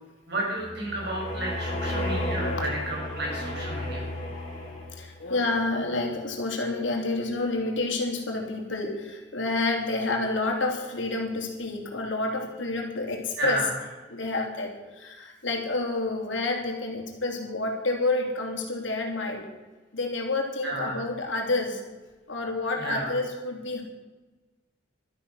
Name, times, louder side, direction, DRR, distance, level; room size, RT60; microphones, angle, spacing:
voice 1, 0.3-4.1 13.4-13.7 20.6-20.9 22.8-23.1, right 1 dB, 60° right, -2 dB, 6.2 m, -31 dB
sound 1, 0.6-5.2, left 1 dB, 35° left, 4.7 m, -33 dB
voice 2, 2.4-2.8 4.9-13.6 14.1-19.5 19.9-21.8 22.3-23.8, left 2 dB, 75° left, 1 dB, 3.0 m, -29 dB
13.0 x 12.5 x 6.2 m, 1.2 s
head